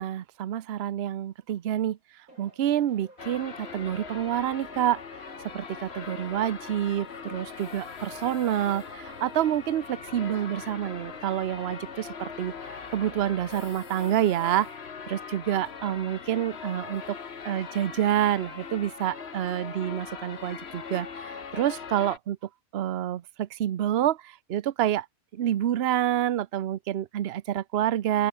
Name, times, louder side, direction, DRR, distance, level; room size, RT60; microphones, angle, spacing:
voice 1, 0.0-2.0 2.4-5.0 5.5-14.7 15.1-17.2 17.4-22.4 22.7-25.1 25.3-28.3, right 11 dB, 55° right, 0.9 m, -28 dB
sound 1, 2.3-14.3, right 1 dB, 80° right, 8.4 m, -51 dB
sound 2, 3.2-22.2, left 6 dB, 50° left, 1.5 m, -41 dB
open air
omnidirectional pair, 1.5 m